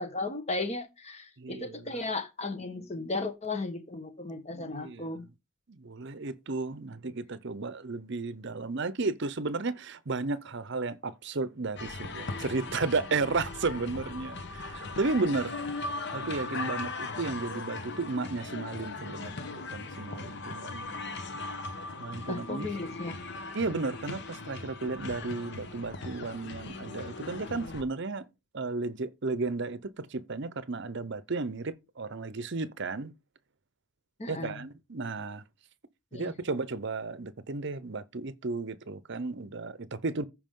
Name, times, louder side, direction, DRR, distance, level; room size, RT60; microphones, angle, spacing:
voice 1, 0.0-5.2 22.3-23.2 34.2-34.6 36.1-36.3, left 2 dB, 30° left, 1.3 m, -35 dB
voice 2, 1.4-2.1 4.5-5.2 5.7-15.5 16.1-20.9 22.0-22.7 23.5-28.3 28.5-33.1 34.3-35.4 36.1-40.2, right 3 dB, 50° right, 0.7 m, -33 dB
sound 1, 11.8-27.8, left 3 dB, 50° left, 1.1 m, -39 dB
14.5 x 4.9 x 3.7 m
head